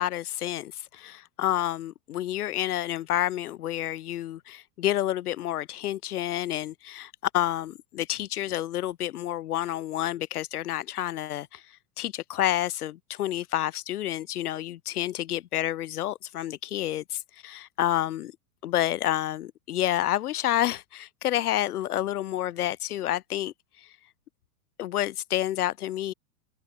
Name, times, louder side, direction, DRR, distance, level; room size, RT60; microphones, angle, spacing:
voice 1, 0.0-11.6 12.0-18.3 18.6-23.5 23.8-23.9 24.8-26.1, left 13 dB, 75° left, 6.9 m, -29 dB
supercardioid pair, 170°, 45 cm